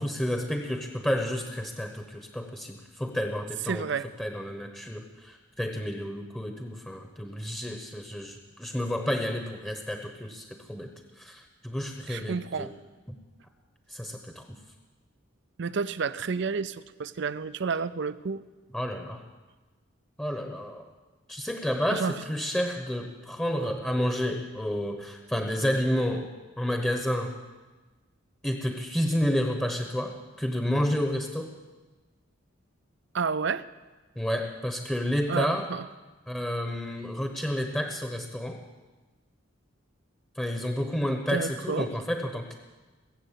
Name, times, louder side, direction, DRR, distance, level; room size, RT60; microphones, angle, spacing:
voice 1, 0.0-3.8 4.2-10.9 11.2-12.7 13.1-13.2 13.9-14.5 18.7-19.2 20.2-20.9 21.3-26.3 26.6-27.3 28.4-31.5 34.2-35.7 36.3-38.6 40.4-42.5, equal, 5° left, 3 dB, 1.0 m, -30 dB
voice 2, 3.7-4.1 12.1-12.7 15.6-18.4 21.9-22.1 33.1-33.7 35.3-35.9 41.3-41.9, right 5 dB, 60° right, 16 dB, 0.5 m, -30 dB
20.5 x 8.0 x 8.2 m, 1.2 s
head